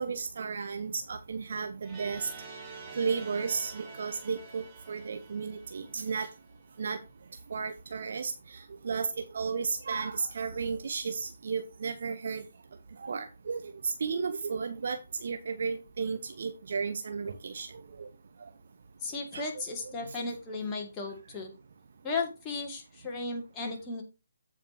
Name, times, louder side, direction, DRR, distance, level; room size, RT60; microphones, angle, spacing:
voice 1, 0.0-2.3 3.0-6.3 6.8-7.0 7.5-12.4 13.0-17.7 18.0-18.1 19.3-19.6 20.1-20.2, right 5 dB, 50° right, 8 dB, 0.8 m, -34 dB
sound 1, 1.8-6.7, right 4 dB, 15° right, 2.5 m, -47 dB
voice 2, 19.0-21.5 22.0-24.0, left 3 dB, 15° left, 1 dB, 2.2 m, -35 dB
15.0 x 5.0 x 2.9 m, 0.29 s
figure-of-eight pair, 140°, 0 cm